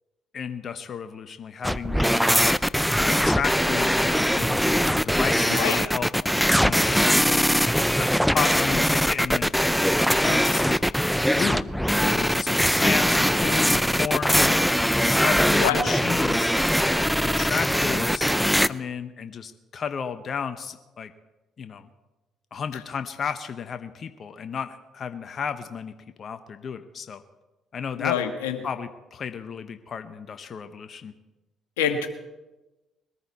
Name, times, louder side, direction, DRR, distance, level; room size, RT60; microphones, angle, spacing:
voice 1, 0.3-2.4 3.0-6.1 6.5-9.7 10.2-10.8 11.2-11.7 12.0-14.6 15.0-16.5 17.2-18.2 18.6-21.1 21.6-21.9 22.5-25.9 26.2-27.2 27.7-28.2 28.6-31.1, left 6 dB, 50° left, 9 dB, 0.9 m, -33 dB
sound 1, 1.6-18.7, equal, ahead, 0.5 m, -21 dB
voice 2, 5.5-5.9 15.6-15.9 28.0-28.6 31.8-32.1, left 7 dB, 90° left, 6 dB, 1.3 m, -25 dB
21.5 x 14.0 x 4.2 m, 1.1 s
hypercardioid pair, 55°, 0 cm